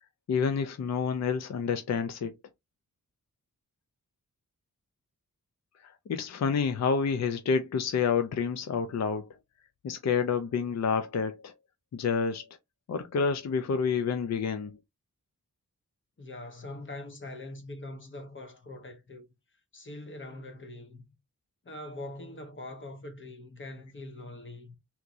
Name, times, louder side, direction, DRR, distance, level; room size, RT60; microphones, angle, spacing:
voice 1, 0.3-2.3 6.1-9.3 9.8-11.5 11.9-12.4 12.9-14.7, left 6 dB, 55° left, 0.4 m, -28 dB
voice 2, 16.2-19.3 19.7-21.0 21.6-24.8, left 2 dB, 35° left, 0.9 m, -43 dB
3.5 x 2.9 x 2.5 m
wide cardioid pair, 125°, 33 cm